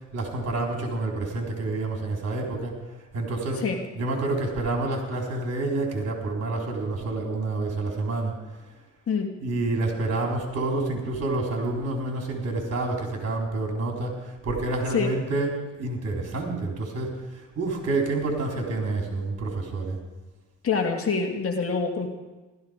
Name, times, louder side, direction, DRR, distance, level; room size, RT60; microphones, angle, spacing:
voice 1, 0.1-2.7 3.1-3.7 4.0-8.3 9.4-20.0, right 2 dB, 55° right, 1 dB, 4.1 m, -28 dB
voice 2, 20.6-22.1, left 5 dB, 50° left, 4 dB, 2.3 m, -25 dB
15.5 x 13.5 x 5.2 m, 1.2 s
cardioid pair, 90°, 30 cm